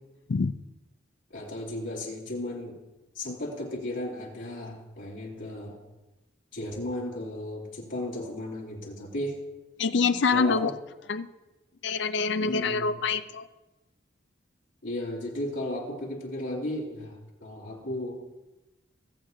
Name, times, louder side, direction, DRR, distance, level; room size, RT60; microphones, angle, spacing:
voice 1, 1.3-2.8 3.1-5.8 6.5-9.4 10.3-10.7 12.4-13.0 14.8-18.2, left 1 dB, 85° left, -5 dB, 3.2 m, -35 dB
voice 2, 9.8-10.7 11.1-11.3 11.8-13.5, left 4 dB, 70° left, 11 dB, 0.4 m, -25 dB
20.5 x 7.4 x 2.7 m, 1.1 s
head